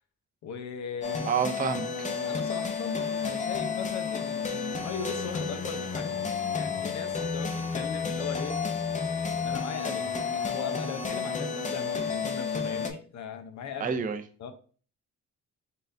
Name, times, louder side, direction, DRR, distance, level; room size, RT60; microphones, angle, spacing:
voice 1, 0.4-1.4 2.3-6.2 6.5-8.6 9.4-14.0 14.4-14.5, left 6 dB, 70° left, 7 dB, 0.8 m, -39 dB
sound 1, 1.0-12.9, left 5 dB, 25° left, 0.6 m, -31 dB
voice 2, 1.2-2.1 13.8-14.2, right 6 dB, 30° right, 9 dB, 0.5 m, -28 dB
4.0 x 3.8 x 2.6 m, 0.40 s
cardioid pair, 90°, 30 cm